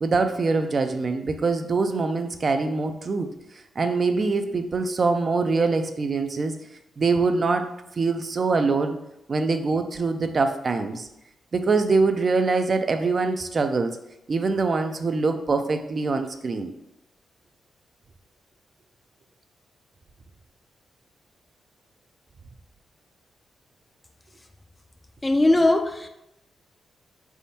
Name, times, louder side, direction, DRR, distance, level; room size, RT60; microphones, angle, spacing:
voice 1, 0.0-3.3 3.8-6.6 7.0-7.7 8.0-9.0 9.3-11.1 11.5-14.0 14.3-16.7, right 4 dB, 50° right, 8 dB, 0.4 m, -24 dB
voice 2, 25.2-26.1, left 2 dB, 20° left, 6 dB, 0.4 m, -19 dB
4.1 x 3.5 x 2.8 m, 0.84 s
cardioid pair, 60°, 0 cm